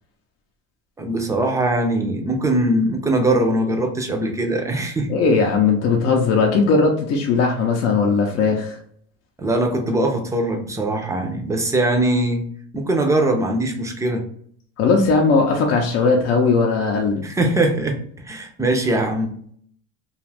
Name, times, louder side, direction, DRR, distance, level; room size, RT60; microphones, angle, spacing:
voice 1, 1.0-5.1 9.4-12.4 12.7-14.3 17.2-19.4, right 1 dB, 10° right, 3 dB, 0.5 m, -21 dB
voice 2, 5.1-8.8 14.8-17.2, left 4 dB, 55° left, 0 dB, 0.6 m, -18 dB
2.5 x 2.4 x 3.2 m, 0.62 s
cardioid pair, 120°, 29 cm